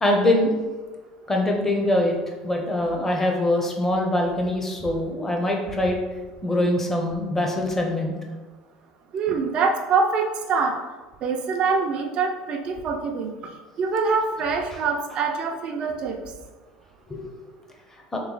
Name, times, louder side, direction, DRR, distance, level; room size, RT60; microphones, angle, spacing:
voice 1, 0.0-0.5 1.3-2.2 2.4-6.0 6.4-8.1 17.1-17.2 18.1-18.2, left 1 dB, 20° left, 1 dB, 0.8 m, -23 dB
voice 2, 9.1-10.8 11.2-13.3 13.8-16.2, right 4 dB, 50° right, 3 dB, 0.5 m, -24 dB
3.2 x 3.1 x 3.9 m, 1.3 s
supercardioid pair, 90°, 2 cm